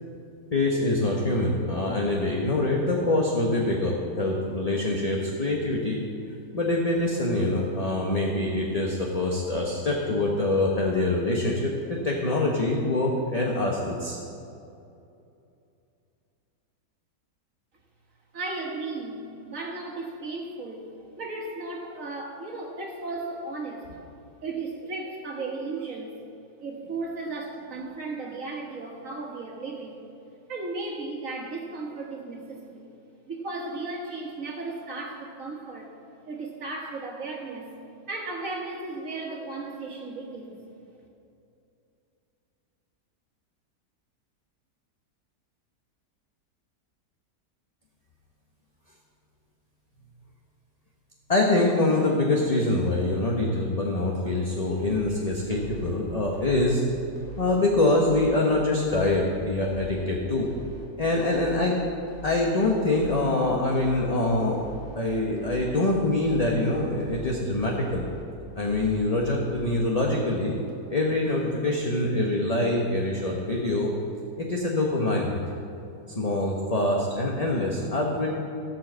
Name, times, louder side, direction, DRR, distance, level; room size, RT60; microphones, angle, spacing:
voice 1, 0.5-6.0 6.5-14.2 51.3-56.8 57.4-60.5 61.0-61.8 62.2-64.7 64.9-68.0 68.6-70.6 70.9-73.9 74.4-75.4 76.1-78.3, left 2 dB, 25° left, -2 dB, 1.0 m, -25 dB
voice 2, 18.3-24.1 24.4-26.1 26.6-30.0 30.5-32.9 33.3-35.9 36.3-37.7 38.1-40.6, right 3 dB, 50° right, 0 dB, 2.0 m, -35 dB
sound 1, 54.7-55.1 55.5-55.9 56.3-56.8 57.2-57.6 58.0-58.4 58.8-59.2 59.6-60.0 60.4-60.9 61.3-61.7 62.1-62.5 62.9-63.3 63.7-64.1 64.5-65.0 65.4-65.8 66.2-66.6 67.0-67.4 67.8-68.3 68.6-69.1 69.5-69.9 70.3-70.4 70.7-70.8 71.1-71.2 71.5-71.6 71.9-72.0 72.3-72.4 72.7-72.8 73.1-73.2 73.6-73.7 74.0-74.1, right 1 dB, 40° left, 2.1 m, -44 dB
16.5 x 5.5 x 7.4 m, 2.7 s
omnidirectional pair, 1.8 m